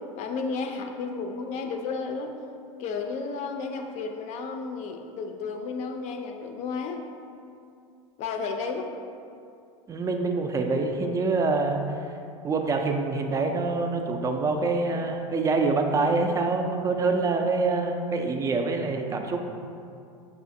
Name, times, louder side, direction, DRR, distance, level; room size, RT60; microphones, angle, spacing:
voice 1, 0.2-2.3 2.8-7.0 8.2-8.9, left 4 dB, 40° left, 4 dB, 0.5 m, -32 dB
voice 2, 9.9-11.8 12.4-19.5, right 3 dB, 20° right, 3 dB, 0.3 m, -25 dB
6.2 x 2.4 x 2.6 m, 2.5 s
hypercardioid pair, 95°, 18 cm